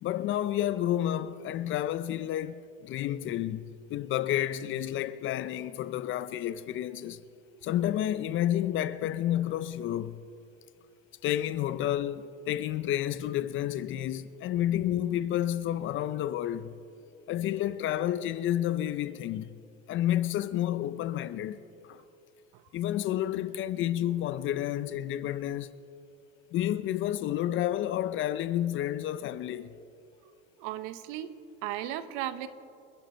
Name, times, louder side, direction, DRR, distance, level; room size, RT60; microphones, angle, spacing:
voice 1, 0.0-7.2 7.6-10.2 11.2-16.7 17.3-19.5 19.9-21.6 21.8-22.0 22.7-25.7 26.5-29.7, left 12 dB, 35° left, 0.5 m, -30 dB
voice 2, 30.6-32.5, right 12 dB, 55° right, 1.0 m, -36 dB
27.0 x 10.5 x 4.4 m
supercardioid pair, 130°, 35 cm